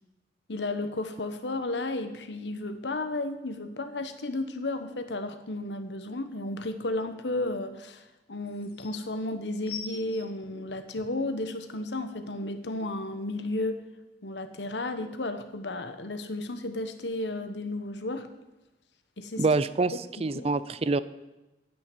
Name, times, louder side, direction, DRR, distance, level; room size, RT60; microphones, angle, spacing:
voice 1, 0.5-13.8 14.2-18.3 19.2-19.5 20.2-20.5, left 2 dB, 85° left, 9 dB, 1.2 m, -33 dB
sound 1, 8.0-8.1 8.4-8.9 9.6-11.3 12.0-12.1, left 7 dB, 60° left, 2.0 m, -42 dB
voice 2, 19.4-19.9 20.2-21.0, right 3 dB, 35° right, 16 dB, 0.5 m, -25 dB
9.3 x 9.3 x 8.4 m, 1.0 s
head